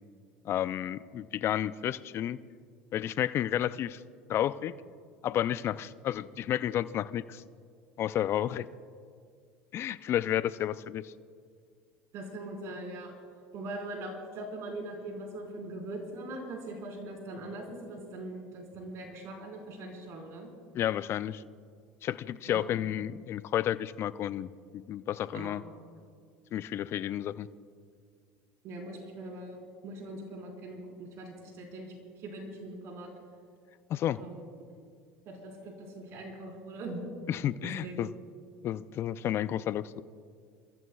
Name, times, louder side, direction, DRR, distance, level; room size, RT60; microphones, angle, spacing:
voice 1, 0.4-2.4 2.9-4.0 4.3-4.7 5.2-7.4 8.0-8.7 9.7-11.1 20.7-21.4 22.0-25.6 26.5-27.5 33.9-34.2 37.3-38.1 38.6-40.0, left 11 dB, 50° left, 16 dB, 0.5 m, -31 dB
voice 2, 12.1-13.1 13.5-20.5 22.5-22.7 25.3-25.6 28.6-33.1 34.1-34.4 35.3-37.0 37.6-38.0, right 2 dB, 55° right, 0 dB, 4.3 m, -41 dB
28.0 x 14.5 x 2.4 m, 2.1 s
hypercardioid pair, 85°, 6 cm